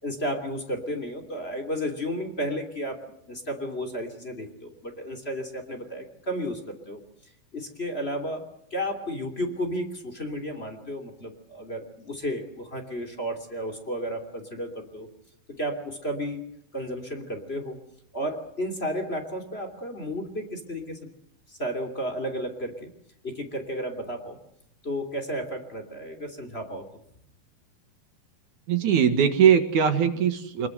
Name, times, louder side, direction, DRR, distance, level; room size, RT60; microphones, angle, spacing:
voice 1, 0.0-3.0 3.3-7.0 7.5-15.1 15.6-17.8 18.1-21.1 21.5-22.9 23.2-24.4 24.8-26.8, equal, 20° left, 6 dB, 2.5 m, -33 dB
voice 2, 28.7-30.7, right 8 dB, 60° right, 8 dB, 2.7 m, -20 dB
25.0 x 21.5 x 7.8 m, 0.71 s
omnidirectional pair, 4.4 m